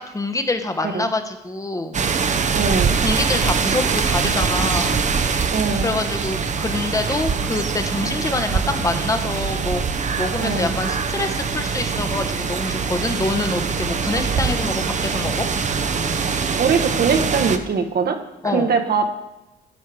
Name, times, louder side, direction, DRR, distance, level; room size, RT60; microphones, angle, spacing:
voice 1, 0.1-2.0 3.0-5.0 5.8-9.8 10.1-15.5 18.4-18.7, left 2 dB, 15° left, 7 dB, 0.9 m, -25 dB
sound 1, 1.9-17.6, right 5 dB, 35° right, 0.7 m, -23 dB
voice 2, 2.5-3.0 5.5-5.9 10.4-10.8 16.6-18.2 18.4-19.1, right 5 dB, 50° right, 6 dB, 1.0 m, -21 dB
12.5 x 4.6 x 4.8 m, 0.98 s
cardioid pair, 90°, 20 cm